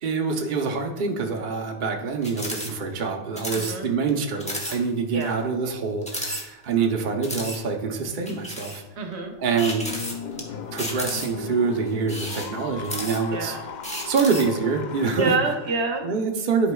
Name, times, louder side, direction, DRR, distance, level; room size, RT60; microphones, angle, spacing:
voice 1, 0.0-8.8 9.4-10.0 10.4-10.5 10.7-13.6 14.0-15.3 16.0-16.7, right 5 dB, 50° right, 2 dB, 0.9 m, -25 dB
sound 1, 2.2-2.7 3.0-3.1 3.4-3.7 4.1-4.2 4.4-4.8 5.2-5.3 6.0-6.8 7.2-7.6 8.3-8.8 9.6-10.4 10.8-11.5 12.0-13.4 13.8-14.5, equal, 5° left, 0.9 m, -33 dB
voice 2, 3.5-3.9 5.1-5.3 9.0-9.3 13.3-13.7 15.2-16.1, right 3 dB, 70° right, 4 dB, 1.0 m, -27 dB
sound 2, 9.8-15.3, left 5 dB, 60° left, 0.5 m, -36 dB
11.5 x 4.9 x 2.3 m, 1.0 s
omnidirectional pair, 1.2 m